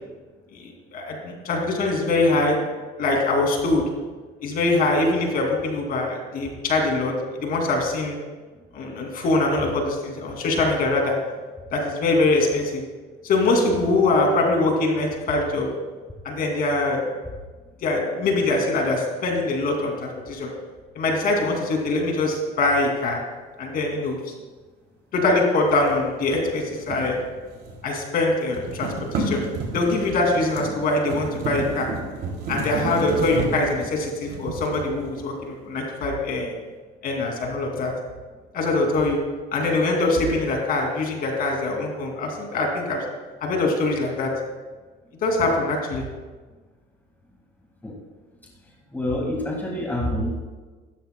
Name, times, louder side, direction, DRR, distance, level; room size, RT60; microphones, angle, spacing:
voice 1, 0.5-2.6 3.0-3.8 4.4-7.1 7.4-8.2 8.7-11.1 11.7-12.8 13.2-15.7 16.2-17.0 17.8-20.5 20.9-23.2 23.6-24.2 25.1-27.1 27.8-29.4 29.7-31.9 32.5-36.5 37.0-37.9 38.5-39.2 39.5-43.0 43.4-44.3 45.2-46.0, left 2 dB, 55° left, 1 dB, 2.6 m, -23 dB
sound 1, 25.7-27.9 28.2-35.5, right 3 dB, 65° right, 2.8 m, -32 dB
voice 2, 48.9-50.3, left 1 dB, 10° left, -1 dB, 1.9 m, -26 dB
14.5 x 13.0 x 2.2 m, 1.3 s
cardioid pair, 120°, 18 cm